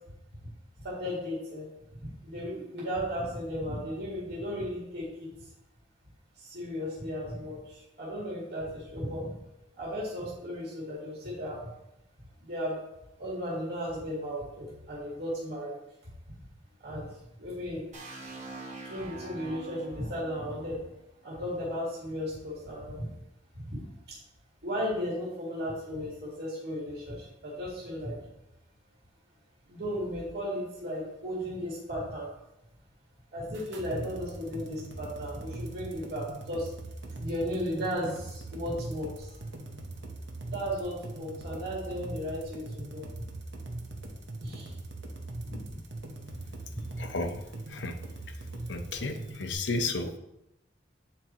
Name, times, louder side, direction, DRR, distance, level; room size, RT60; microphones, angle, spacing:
voice 1, 0.8-1.7 2.2-5.3 6.4-9.3 9.8-11.7 12.4-12.8 13.2-15.8 16.8-17.1 17.4-17.9 18.9-20.8 21.2-23.1 23.5-23.8 24.1-24.2 24.6-28.2 29.7-32.3 33.3-36.7 37.2-39.3 40.5-43.0 44.4-44.7 45.4-45.8, equal, 60° right, -6 dB, 2.0 m, -35 dB
sound 1, 17.9-21.8, right 3 dB, 40° right, 1.4 m, -45 dB
sound 2, 33.5-49.5, right 2 dB, 80° right, 1.0 m, -41 dB
voice 2, 47.0-48.0 48.2-50.2, left 3 dB, 75° left, 7 dB, 0.7 m, -34 dB
8.6 x 4.6 x 3.0 m, 0.88 s
head